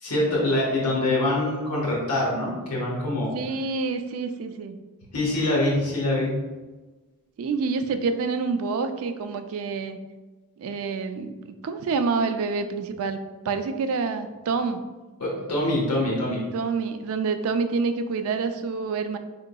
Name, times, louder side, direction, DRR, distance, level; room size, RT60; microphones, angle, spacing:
voice 1, 0.0-3.4 5.1-6.3 15.2-16.4, left 1 dB, 85° left, -4 dB, 1.3 m, -24 dB
voice 2, 3.3-4.8 7.4-10.0 10.6-13.2 13.4-14.8 16.5-19.2, right 4 dB, 65° right, 9 dB, 0.3 m, -27 dB
4.9 x 3.7 x 2.2 m, 1.2 s
head